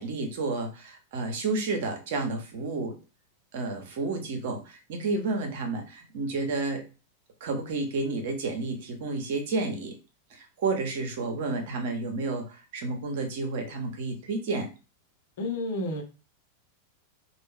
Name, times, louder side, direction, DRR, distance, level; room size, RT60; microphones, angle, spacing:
voice 1, 0.0-3.0 3.5-6.8 7.4-9.9 10.3-14.7, right 3 dB, 55° right, 4 dB, 1.1 m, -31 dB
voice 2, 15.4-16.0, left 2 dB, 55° left, 3 dB, 1.0 m, -30 dB
4.3 x 2.7 x 3.5 m, 0.32 s
figure-of-eight pair, 90°, 0 cm